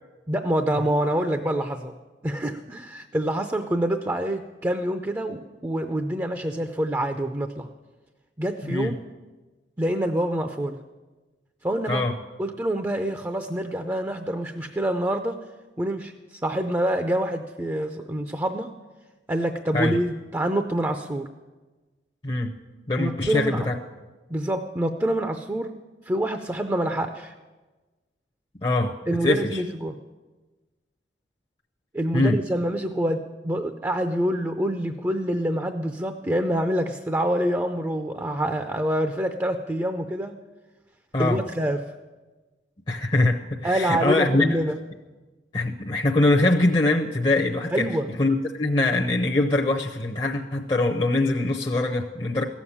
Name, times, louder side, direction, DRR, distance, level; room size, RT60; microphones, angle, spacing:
voice 1, 0.3-2.0 2.2-7.7 8.4-9.0 9.8-10.8 11.6-12.0 12.4-15.4 15.8-16.1 16.4-18.7 19.3-21.3 23.0-23.7 24.3-25.8 26.0-27.3 29.1-30.0 31.9-40.4 41.2-41.9 43.6-44.8 47.7-48.1, right 1 dB, 15° right, 7 dB, 0.5 m, -26 dB
voice 2, 8.6-8.9 11.9-12.1 19.7-20.0 22.2-22.6 22.9-23.8 28.6-28.9 29.2-29.6 32.1-32.4 41.1-41.4 42.9-44.5 45.5-47.9 48.2-52.4, left 2 dB, 30° left, 1 dB, 0.7 m, -23 dB
15.0 x 7.2 x 9.8 m, 1.3 s
head